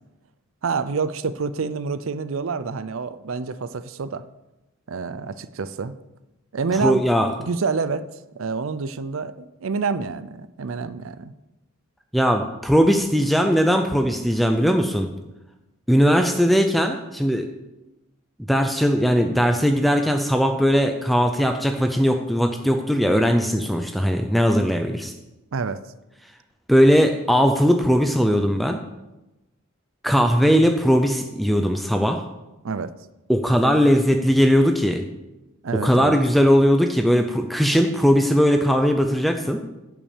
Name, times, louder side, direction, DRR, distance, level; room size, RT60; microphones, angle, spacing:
voice 1, 0.6-4.2 4.9-5.9 6.5-7.0 7.4-8.1 8.3-11.3 25.5-25.8 32.6-32.9 35.6-36.2, right 4 dB, 65° right, 14 dB, 0.5 m, -27 dB
voice 2, 6.8-7.3 12.1-15.1 15.9-17.4 18.5-25.1 26.7-28.8 30.0-32.2 33.3-35.0 35.7-39.6, equal, ahead, 5 dB, 0.5 m, -19 dB
11.0 x 6.0 x 7.2 m, 1.0 s
head